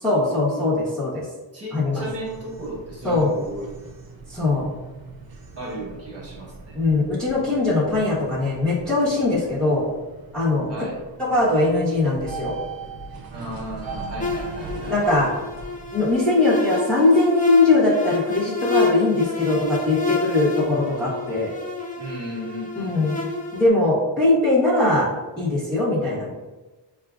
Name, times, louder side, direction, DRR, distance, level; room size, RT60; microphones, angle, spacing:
voice 1, 0.0-1.3 1.7-2.0 3.0-3.3 4.3-4.7 6.7-9.9 10.3-10.7 11.2-12.6 14.9-15.3 15.9-21.5 22.8-23.1 23.5-25.1 25.4-26.3, left 2 dB, ahead, -8 dB, 0.9 m, -20 dB
voice 2, 1.5-3.7 5.6-6.8 10.7-11.0 13.3-15.0 22.0-23.2, right 1 dB, 30° right, -4 dB, 1.2 m, -35 dB
sound 1, 1.8-16.2, right 4 dB, 50° right, 0.6 m, -40 dB
sound 2, 14.2-23.7, left 3 dB, 20° left, 0.5 m, -29 dB
6.4 x 2.3 x 2.4 m, 1.2 s
wide cardioid pair, 125°, 46 cm